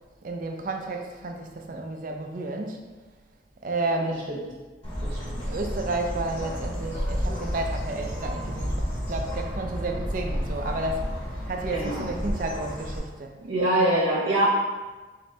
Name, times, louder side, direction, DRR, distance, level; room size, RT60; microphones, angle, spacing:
voice 1, 0.2-2.8 3.6-4.3 5.4-11.1 11.5-13.3, right 2 dB, 45° right, 3 dB, 0.4 m, -31 dB
Bird, 4.8-13.0, equal, 30° left, 1.0 m, -31 dB
voice 2, 5.0-5.4 11.7-12.1 13.4-14.5, right 1 dB, 70° right, -5 dB, 0.8 m, -24 dB
4.2 x 3.2 x 2.7 m, 1.3 s
head